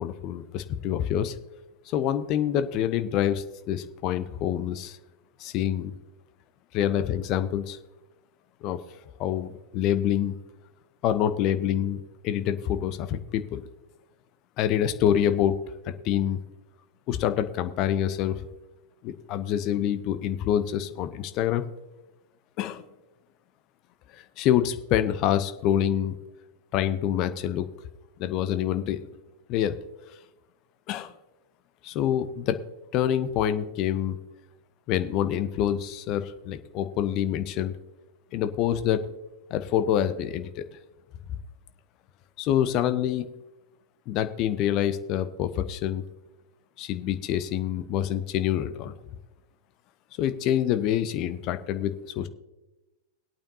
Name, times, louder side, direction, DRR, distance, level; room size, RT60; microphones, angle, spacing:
voice 1, 0.0-1.4 1.9-5.0 5.4-5.9 6.7-7.8 8.6-8.8 9.2-10.4 11.0-13.6 14.6-15.6 16.0-16.4 17.1-18.4 19.0-21.6 22.6-22.8 24.1-26.1 26.7-27.7 28.2-29.0 29.5-29.8 30.9-31.1 31.8-32.6 32.9-34.2 34.9-37.7 38.3-39.1 39.5-40.6 42.4-43.2 44.1-46.0 46.8-48.9 50.2-52.3, left 10 dB, 40° left, 11 dB, 0.8 m, -26 dB
20.0 x 8.7 x 2.8 m, 1.0 s
figure-of-eight pair, 90°, 0 cm